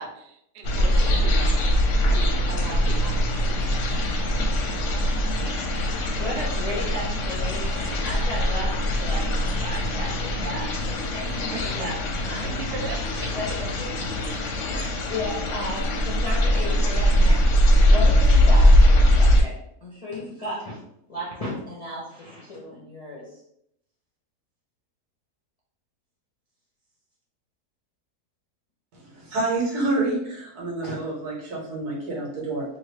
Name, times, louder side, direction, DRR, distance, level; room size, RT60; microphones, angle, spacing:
voice 1, 0.0-1.5 2.0-4.6 11.5-11.9 12.4-13.8, right 4 dB, 60° right, 3 dB, 0.7 m, -39 dB
sound 1, 0.6-19.4, equal, 65° left, 0.8 m, -21 dB
voice 2, 6.2-12.5 13.3-13.5 13.8-13.9 15.1-19.5 19.8-20.8 21.1-23.4, left 1 dB, 45° left, -5 dB, 0.5 m, -34 dB
voice 3, 28.9-32.6, right 2 dB, 90° right, -4 dB, 1.7 m, -28 dB
3.0 x 2.7 x 3.1 m, 0.75 s
omnidirectional pair, 1.6 m